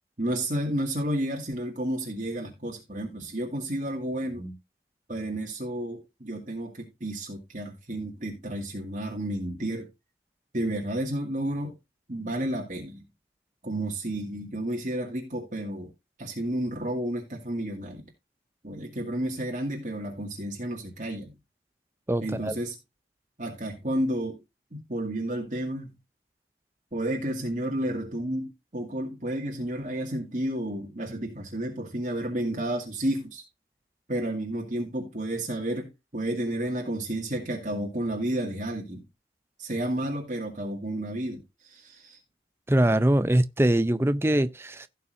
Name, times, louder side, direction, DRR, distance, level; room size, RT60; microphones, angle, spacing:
voice 1, 0.2-4.6 5.1-9.9 10.5-11.7 12.1-13.0 13.6-15.9 16.2-18.0 18.6-21.3 22.2-22.8 23.4-24.4 24.7-26.0 26.9-33.4 34.1-39.0 39.6-42.2, right 1 dB, 45° right, 2.1 m, -31 dB
voice 2, 22.1-22.6 42.7-44.9, right 1 dB, 15° right, 0.5 m, -23 dB
16.5 x 5.7 x 2.6 m
head